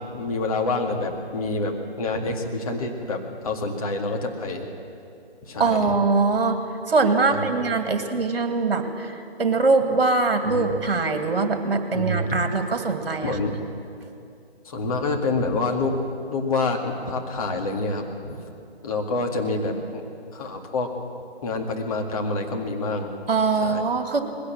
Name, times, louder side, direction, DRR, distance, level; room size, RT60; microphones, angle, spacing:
voice 1, 0.0-3.2 3.4-4.7 5.5-6.0 7.3-7.6 10.5-10.7 11.9-12.4 13.2-13.5 14.6-16.0 16.3-18.4 18.8-20.0 20.3-20.9 21.4-23.1 23.6-23.8, left 2 dB, 35° left, 2 dB, 2.1 m, -27 dB
voice 2, 5.6-6.6 6.9-13.4 23.3-24.2, right 3 dB, 60° right, 6 dB, 2.4 m, -22 dB
20.5 x 16.5 x 7.8 m, 2.6 s
figure-of-eight pair, 155°, 32 cm